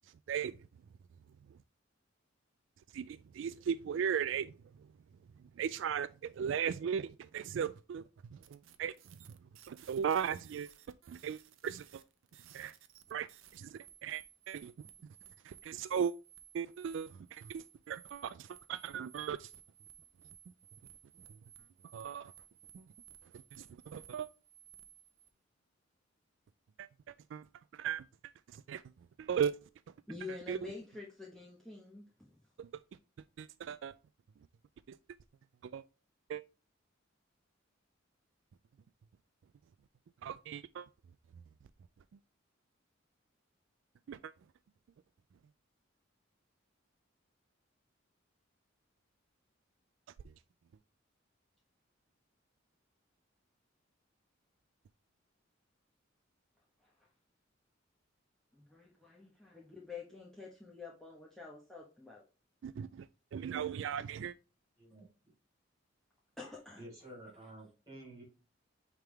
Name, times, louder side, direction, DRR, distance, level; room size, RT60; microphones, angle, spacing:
voice 1, 2.9-4.5 5.6-8.0 8.3-8.9 9.3-9.4 9.7-10.7 11.1-12.0 12.5-12.7 13.1-14.7 15.4-16.1 16.5-19.5 21.9-22.3 22.7-22.9 23.5-24.3 26.8-27.5 27.7-28.8 29.2-29.6 30.3-30.7 32.6-32.8 33.4-33.9 34.9-35.0 35.6-35.8 36.3-36.4 40.2-40.9 44.1-44.3 62.6-64.3, right 8 dB, 65° right, 0.3 m, -37 dB
sound 1, 8.4-25.3, right 9 dB, 80° right, 0.7 m, -59 dB
voice 2, 30.1-32.3 56.8-56.9 58.5-62.2 66.4-66.8, left 4 dB, ahead, 1.2 m, -48 dB
voice 3, 66.8-68.2, right 1 dB, 15° right, 4.1 m, -51 dB
8.9 x 3.6 x 3.3 m
head